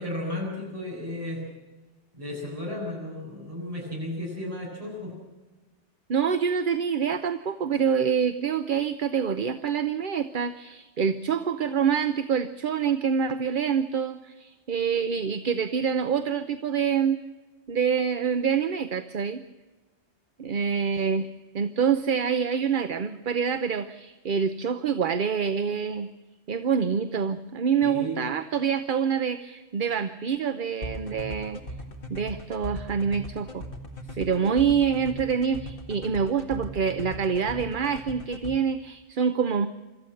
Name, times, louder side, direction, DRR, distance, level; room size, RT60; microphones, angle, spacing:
voice 1, 0.0-1.5 2.1-5.2 27.8-28.2 34.1-34.4, left 1 dB, 30° right, -3 dB, 8.1 m, -34 dB
voice 2, 6.1-17.2 17.7-19.4 20.4-26.1 26.5-31.6 32.1-33.6 34.2-39.7, right 7 dB, 50° right, 10 dB, 0.9 m, -26 dB
sound 1, 30.8-38.5, left 1 dB, 50° left, 2.1 m, -38 dB
26.0 x 14.0 x 7.8 m, 1.2 s
omnidirectional pair, 1.2 m